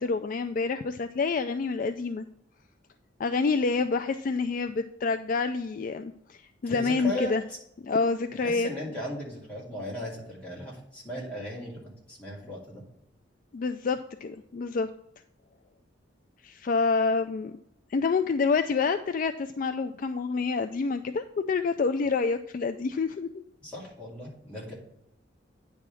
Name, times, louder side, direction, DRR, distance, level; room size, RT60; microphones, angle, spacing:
voice 1, 0.0-2.2 3.2-7.4 7.9-8.7 13.5-14.9 16.4-17.5 17.9-23.4, left 4 dB, 45° left, 8 dB, 0.3 m, -27 dB
voice 2, 6.7-7.6 8.4-11.8 12.1-12.8 23.6-24.7, left 1 dB, 5° left, -6 dB, 2.6 m, -37 dB
9.5 x 3.5 x 6.0 m, 0.77 s
head